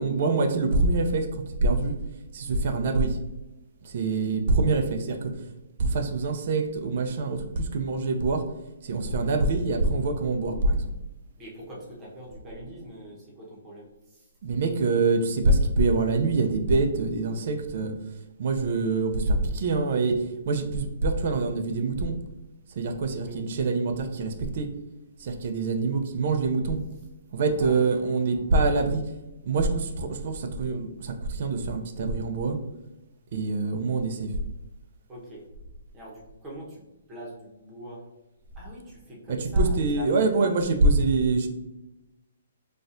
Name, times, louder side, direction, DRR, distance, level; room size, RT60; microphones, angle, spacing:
voice 1, 0.0-2.0 2.3-3.2 3.8-5.3 5.8-8.5 8.8-10.9 14.4-17.9 18.4-22.1 22.8-24.7 25.2-26.8 27.3-29.0 29.4-32.6 33.3-34.3 39.6-41.5, right 3 dB, 50° right, 6 dB, 0.5 m, -25 dB
voice 2, 11.4-14.3 23.2-23.5 27.6-28.5 35.1-35.5 35.9-36.8 37.1-38.1 38.5-40.5, equal, 15° right, -4 dB, 0.9 m, -43 dB
4.1 x 2.4 x 2.5 m, 1.0 s
hypercardioid pair, 160°, 0 cm